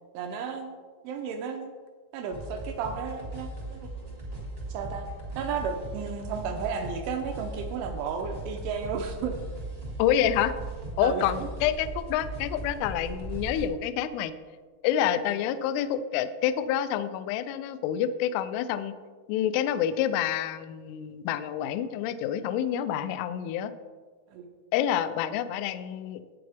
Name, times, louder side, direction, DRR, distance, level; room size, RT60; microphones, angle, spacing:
voice 1, 0.1-0.8 1.0-1.7 2.1-3.9 4.7-5.0 5.4-9.4 11.0-11.3 24.3-24.5, right 6 dB, 80° right, 5 dB, 2.8 m, -33 dB
sound 1, 2.3-13.7, right 2 dB, 60° right, 0.6 m, -38 dB
voice 2, 10.0-10.5 11.0-14.3 14.8-18.9 19.3-23.7 24.7-26.2, left 10 dB, 85° left, 11 dB, 2.9 m, -28 dB
13.0 x 9.0 x 3.5 m, 1.5 s
omnidirectional pair, 6.0 m